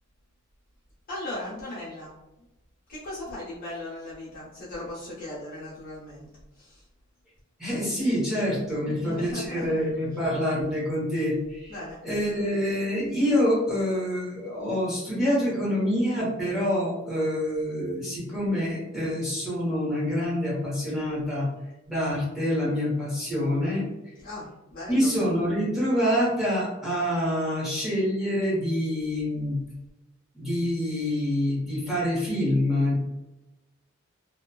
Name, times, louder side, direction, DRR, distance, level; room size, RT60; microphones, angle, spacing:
voice 1, 1.1-2.1 2.9-6.3 6.5-6.8 8.9-9.7 11.7-12.0 24.2-25.1, left 1 dB, 45° left, -8 dB, 0.9 m, -37 dB
voice 2, 7.6-11.8 12.0-21.5 21.9-23.8 24.9-29.6 30.3-33.0, equal, ahead, -8 dB, 1.1 m, -26 dB
2.8 x 2.3 x 2.3 m, 0.99 s
head